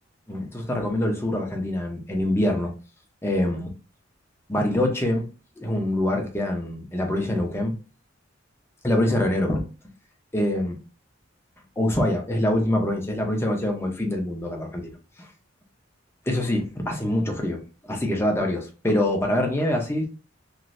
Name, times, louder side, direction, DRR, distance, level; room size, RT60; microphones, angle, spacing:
voice 1, 0.3-2.7 3.2-3.7 4.5-5.3 5.6-7.8 8.8-9.6 10.3-10.8 11.8-14.9 15.2-15.3 16.3-20.1, left 1 dB, 15° left, 1 dB, 0.6 m, -25 dB
3.1 x 2.5 x 2.5 m, 0.34 s
head